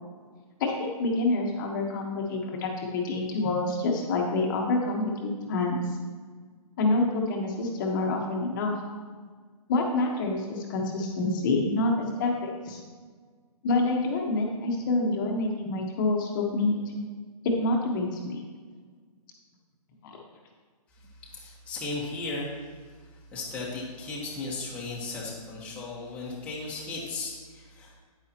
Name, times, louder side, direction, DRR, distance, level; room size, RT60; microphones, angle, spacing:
voice 1, 0.6-5.8 6.8-8.7 9.7-12.8 13.6-17.0 17.4-18.4 20.0-20.2, left 2 dB, 30° left, 0 dB, 1.3 m, -27 dB
voice 2, 21.2-22.6 23.3-28.0, left 3 dB, 5° left, -6 dB, 1.3 m, -36 dB
9.6 x 9.4 x 3.0 m, 1.5 s
hypercardioid pair, 160°, 19 cm